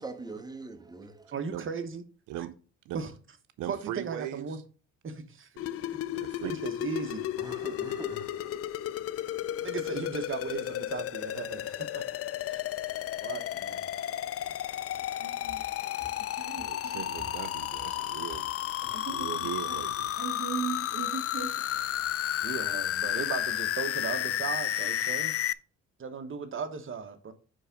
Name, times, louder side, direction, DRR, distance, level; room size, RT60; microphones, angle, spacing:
voice 1, 0.0-1.3 7.0-8.7, right 3 dB, 15° right, 1.3 m, -43 dB
voice 2, 1.3-2.0 2.9-3.1 3.7-4.6 5.0-5.5 5.8-6.0 6.4-7.3 9.6-12.2 12.5-12.6 13.2-13.9 15.1-17.0 18.9-19.3 20.2-21.5 22.4-25.3 26.0-27.3, right 5 dB, 45° right, 1.2 m, -37 dB
voice 3, 3.6-4.6 5.6-5.8 6.1-6.6 16.6-18.5 19.1-20.2, right 12 dB, 90° right, 0.6 m, -39 dB
sound 1, 5.6-25.5, left 12 dB, 50° left, 0.4 m, -33 dB
sound 2, 14.4-19.2, equal, 5° left, 2.3 m, -53 dB
9.1 x 3.5 x 5.2 m
cardioid pair, 90°, 30 cm